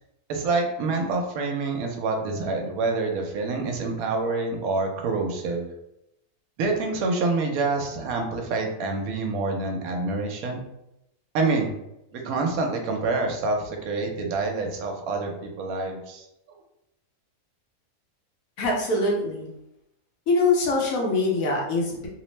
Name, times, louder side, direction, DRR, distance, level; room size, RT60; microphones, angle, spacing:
voice 1, 0.3-5.7 6.6-10.6 11.3-11.7 12.1-16.2, right 3 dB, 75° right, 2 dB, 1.0 m, -27 dB
voice 2, 18.6-19.5 20.3-22.1, left 2 dB, 70° left, -2 dB, 1.1 m, -23 dB
2.8 x 2.0 x 3.1 m, 0.85 s
omnidirectional pair, 1.6 m